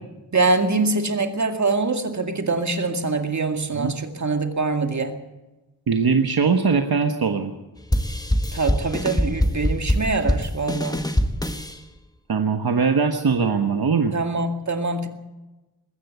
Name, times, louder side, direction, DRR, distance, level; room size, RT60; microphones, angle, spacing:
voice 1, 0.3-5.2 8.5-11.0 14.1-15.1, right 3 dB, 45° right, 6 dB, 2.1 m, -24 dB
voice 2, 5.9-7.5 12.3-14.1, right 5 dB, 65° right, 5 dB, 1.4 m, -21 dB
sound 1, 7.9-11.8, left 1 dB, 10° left, 1.4 m, -23 dB
21.0 x 15.5 x 8.3 m, 1.1 s
wide cardioid pair, 90°, 39 cm